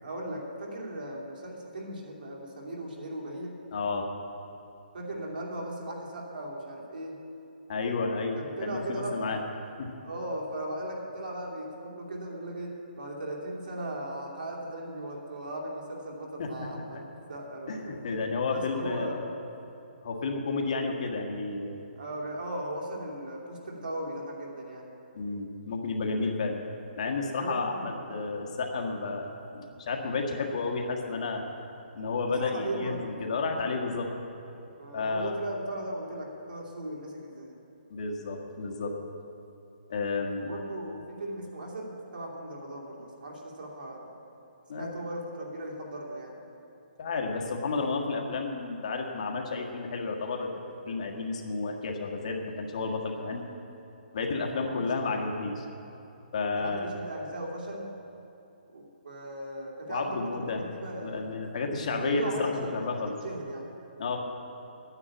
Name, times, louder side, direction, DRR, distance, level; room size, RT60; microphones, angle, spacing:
voice 1, 0.0-3.6 4.9-7.2 8.4-9.2 10.0-17.0 17.3-18.0 18.5-19.3 22.0-24.9 27.3-28.0 32.3-33.1 34.8-37.5 40.4-44.1 44.7-46.4 54.5-55.2 56.5-57.9 58.7-61.3 61.9-63.7 64.1-64.2, right 1 dB, 70° right, -2 dB, 2.8 m, -37 dB
voice 2, 3.7-4.1 7.7-9.4 9.8-9.9 16.4-17.0 17.7-19.1 20.0-21.8 25.1-26.5 26.9-31.4 31.9-34.1 34.9-35.4 37.9-38.9 39.9-40.5 44.7-45.0 47.0-53.4 54.1-55.6 56.3-56.9 59.9-60.6 61.0-63.1 64.0-64.2, left 3 dB, 45° left, 1 dB, 1.6 m, -31 dB
10.5 x 9.8 x 8.5 m, 2.9 s
hypercardioid pair, 170°, 5 cm